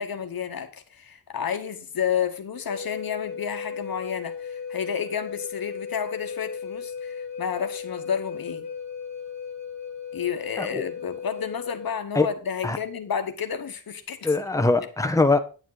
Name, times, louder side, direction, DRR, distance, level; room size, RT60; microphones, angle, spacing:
voice 1, 0.0-8.7 10.1-14.3 14.8-14.9, left 7 dB, 70° left, 1.3 m, -31 dB
Wind instrument woodwind instrument, 2.7-12.0, left 6 dB, 50° left, 2.3 m, -36 dB
voice 2, 14.2-15.4, left 3 dB, 10° left, 1.2 m, -22 dB
10.0 x 7.2 x 4.0 m
cardioid pair, 60°, 36 cm